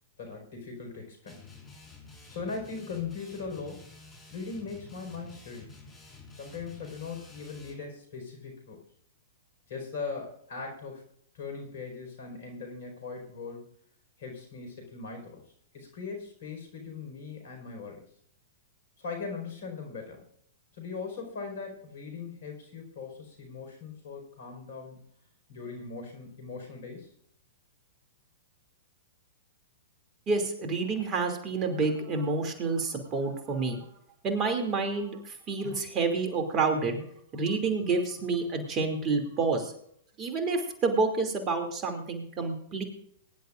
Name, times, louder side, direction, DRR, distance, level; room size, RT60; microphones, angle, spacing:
voice 1, 0.2-1.4 2.3-3.9 4.3-5.8 6.3-8.8 9.7-11.0 11.3-13.7 14.2-15.4 15.7-18.1 19.0-20.2 20.7-25.0 25.5-27.1, left 4 dB, 65° left, 4 dB, 4.7 m, -40 dB
sound 1, 1.3-7.9, left 3 dB, 15° left, 4.9 m, -51 dB
voice 2, 30.3-33.8 34.2-37.0 37.3-39.7 40.2-42.8, right 4 dB, 30° right, 4 dB, 2.6 m, -29 dB
22.5 x 11.0 x 2.5 m, 0.65 s
hypercardioid pair, 110°, 0 cm